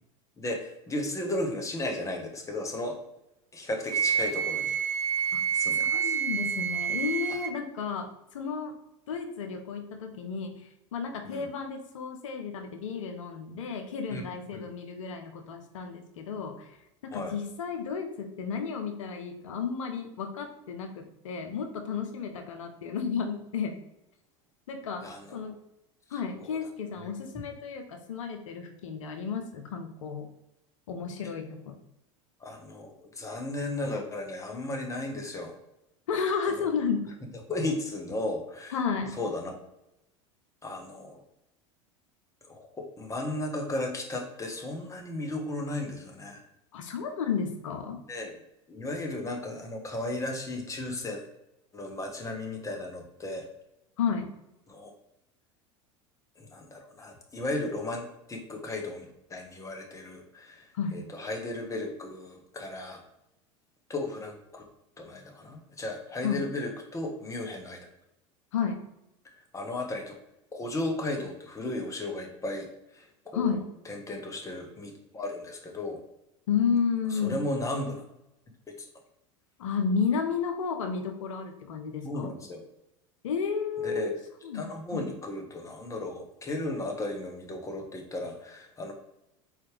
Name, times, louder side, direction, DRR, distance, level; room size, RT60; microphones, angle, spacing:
voice 1, 0.4-3.0 3.5-4.8 5.5-6.1 11.2-11.5 14.1-14.3 14.5-14.7 17.1-17.3 25.0-25.4 26.1-26.6 27.0-27.1 32.4-35.6 36.6-36.7 37.3-38.8 39.1-39.6 40.6-41.2 42.4-46.4 48.1-48.3 48.7-51.2 51.7-53.5 54.7-54.9 56.4-63.0 63.9-64.6 65.0-67.9 69.5-70.2 70.5-73.6 73.8-76.0 77.1-78.0 78.7-78.9 82.0-82.6 83.8-84.1 84.5-88.9, left 2 dB, 20° left, 1 dB, 1.1 m, -35 dB
Wind instrument woodwind instrument, 3.9-7.6, right 7 dB, 45° right, 0.5 m, -28 dB
voice 2, 5.9-8.7 9.1-16.8 17.0-23.8 24.7-25.1 25.3-25.6 26.1-30.3 30.9-31.7 36.1-37.1 38.7-39.2 46.7-48.0 54.0-54.3 60.7-61.0 66.2-66.4 68.5-68.8 73.3-73.6 76.5-77.4 79.6-82.3 83.2-84.2 84.4-85.0, left 6 dB, 85° left, 5 dB, 0.6 m, -32 dB
4.2 x 3.2 x 3.3 m, 0.85 s
hypercardioid pair, 90°, 16 cm